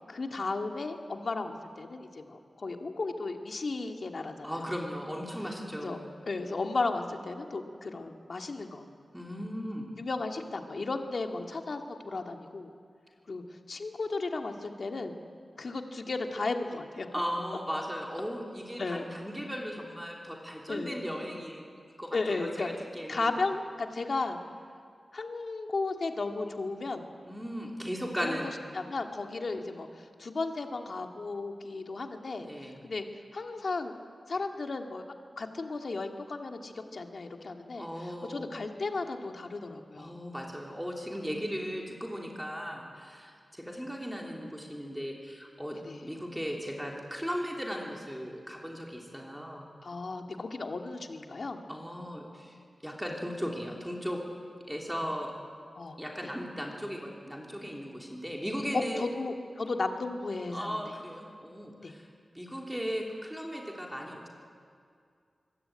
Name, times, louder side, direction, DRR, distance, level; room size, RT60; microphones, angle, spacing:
voice 1, 0.1-4.7 5.8-6.0 6.3-8.9 10.0-12.7 13.3-13.4 13.7-15.1 15.6-17.1 18.8-19.1 20.7-21.0 22.1-22.7 23.1-24.4 25.1-27.0 28.2-32.5 32.8-33.1 33.3-33.9 34.3-35.0 35.4-40.2 41.2-41.3 45.7-46.1 49.8-51.6 55.8-56.3 58.7-60.8 61.8-61.9, left 3 dB, 55° left, 4 dB, 2.1 m, -34 dB
voice 2, 4.4-6.0 9.1-9.9 17.1-23.3 27.2-28.5 32.4-32.8 36.8-36.9 37.7-38.5 39.9-49.7 51.7-52.6 52.8-54.2 54.7-55.3 56.0-59.0 60.5-62.1 62.3-64.3, equal, ahead, -1 dB, 3.1 m, -37 dB
24.0 x 21.5 x 8.9 m, 2.3 s
wide cardioid pair, 115°, 0 cm